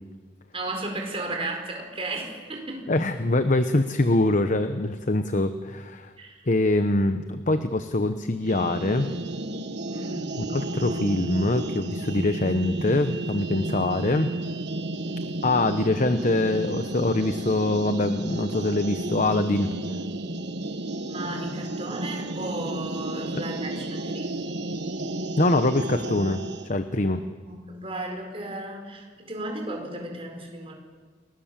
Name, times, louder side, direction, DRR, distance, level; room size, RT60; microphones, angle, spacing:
voice 1, 0.5-2.9 6.2-6.5 9.8-10.3 21.1-24.3 27.0-27.2 27.4-30.7, right 2 dB, 30° right, 2 dB, 4.6 m, -34 dB
voice 2, 2.9-6.1 6.5-9.1 10.4-14.3 15.4-19.7 25.4-27.2, left 2 dB, 45° left, 9 dB, 1.0 m, -24 dB
sound 1, 8.4-26.7, right 2 dB, 65° right, 1.4 m, -32 dB
29.5 x 20.5 x 7.5 m, 1.5 s
head